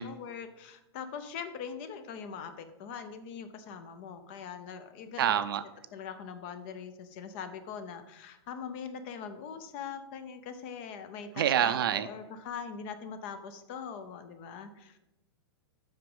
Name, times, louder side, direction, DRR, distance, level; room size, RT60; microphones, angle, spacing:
voice 1, 0.0-5.4 5.9-15.0, left 6 dB, 25° left, 10 dB, 0.5 m, -42 dB
voice 2, 5.2-5.6 11.4-12.1, right 10 dB, 55° right, 12 dB, 0.6 m, -26 dB
7.8 x 6.0 x 5.3 m, 0.96 s
supercardioid pair, 175°, 14 cm